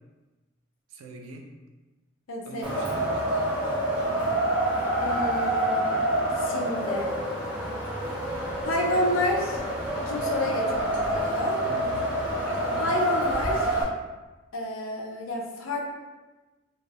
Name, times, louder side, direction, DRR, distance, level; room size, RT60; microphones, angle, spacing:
voice 1, 0.9-1.5 2.4-3.2 4.0-4.4 11.6-12.1 12.5-13.0, right 1 dB, 85° right, 3 dB, 0.4 m, -42 dB
voice 2, 2.3-2.7 5.0-5.9 6.4-7.2 8.6-9.6 10.1-11.6 12.8-13.7 14.5-15.9, left 1 dB, 70° left, 0 dB, 0.5 m, -29 dB
Wind, 2.6-13.8, right 1 dB, 5° right, 0.5 m, -27 dB
2.2 x 2.0 x 3.4 m, 1.2 s
head